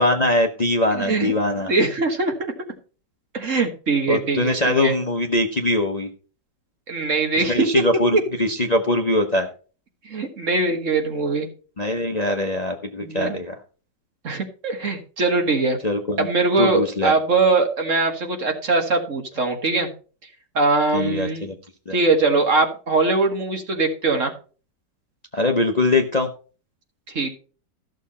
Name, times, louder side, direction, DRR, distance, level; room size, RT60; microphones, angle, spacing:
voice 1, 0.0-1.7 4.1-6.1 7.4-9.5 11.8-13.5 15.8-16.3 16.6-17.1 20.9-21.5 21.9-22.0 25.3-26.3, left 1 dB, 30° left, 4 dB, 0.9 m, -22 dB
voice 2, 0.9-1.3 1.7-2.5 3.3-4.9 6.9-7.8 8.1-8.2 10.1-11.5 13.0-13.4 14.2-15.8 16.2-19.9 20.6-21.5 21.9-24.3 27.1-27.3, right 3 dB, 50° right, 4 dB, 1.8 m, -21 dB
14.0 x 6.6 x 4.2 m, 0.38 s
omnidirectional pair, 1.8 m